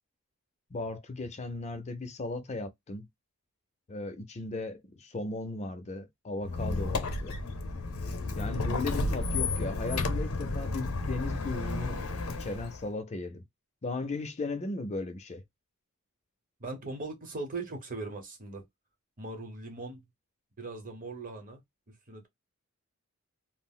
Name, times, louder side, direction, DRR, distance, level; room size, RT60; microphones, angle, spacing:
voice 1, 0.7-3.1 3.9-7.4 8.4-12.0 12.4-13.4 13.8-15.4, left 2 dB, 30° left, 0.4 m, -36 dB
Squeak, 6.4-12.8, left 2 dB, 75° left, 0.6 m, -32 dB
voice 2, 16.6-18.6 19.2-20.0 20.6-21.6 21.9-22.3, right 3 dB, 35° right, 0.8 m, -39 dB
2.4 x 2.0 x 3.6 m
head